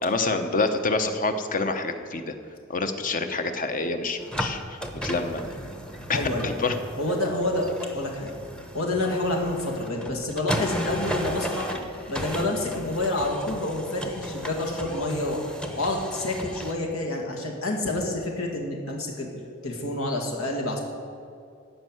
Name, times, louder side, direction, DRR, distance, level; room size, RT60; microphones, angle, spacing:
voice 1, 0.0-2.3 2.7-5.4 6.1-6.8, left 3 dB, 40° left, 8 dB, 0.9 m, -27 dB
sound 1, 4.2-16.7, equal, 5° left, 0.8 m, -35 dB
voice 2, 6.1-6.5 7.0-7.7 7.9-8.3 8.7-11.7 12.1-15.4 15.8-19.3 19.6-20.8, left 2 dB, 80° left, 0 dB, 2.0 m, -28 dB
14.0 x 5.6 x 9.1 m, 2.4 s
head